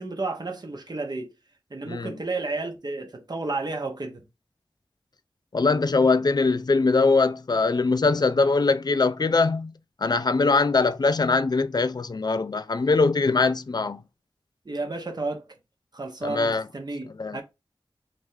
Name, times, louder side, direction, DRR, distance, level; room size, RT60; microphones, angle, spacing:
voice 1, 0.0-1.3 1.7-4.2 14.7-15.4 15.9-17.4, right 3 dB, 50° right, 0.8 m, -32 dB
voice 2, 5.5-9.7 10.0-14.0 16.2-16.6 17.2-17.4, left 3 dB, 50° left, 0.4 m, -22 dB
3.2 x 2.7 x 3.5 m
wide cardioid pair, 65°, 9 cm